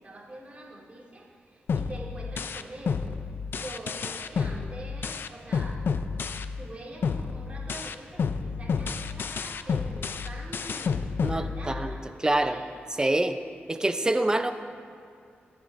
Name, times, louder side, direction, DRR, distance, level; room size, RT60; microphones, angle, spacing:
voice 1, 0.0-5.8 6.6-12.7, right 1 dB, 35° right, -4 dB, 2.4 m, -44 dB
sound 1, 1.7-6.7 7.0-12.1, left 5 dB, 65° left, 0.5 m, -30 dB
voice 2, 11.2-11.9 12.2-12.6 13.0-13.4 13.7-14.5, right 1 dB, 20° right, 9 dB, 0.5 m, -25 dB
22.5 x 10.5 x 2.6 m, 2.3 s
wide cardioid pair, 100°, 4 cm